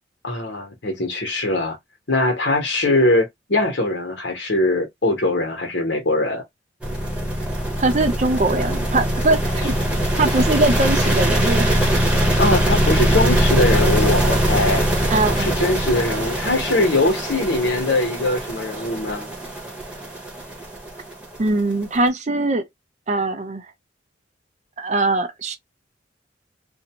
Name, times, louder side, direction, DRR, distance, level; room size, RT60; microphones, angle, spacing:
voice 1, 0.2-1.8 2.1-6.4 12.4-14.8 15.3-19.3, left 2 dB, 65° left, 1.1 m, -21 dB
sound 1, 6.8-22.0, equal, 5° right, 1.0 m, -21 dB
voice 2, 7.8-9.7 10.2-11.8 15.1-15.5 21.4-22.7 23.1-23.6 24.8-25.6, right 2 dB, 40° right, 0.6 m, -21 dB
2.6 x 2.2 x 2.9 m
head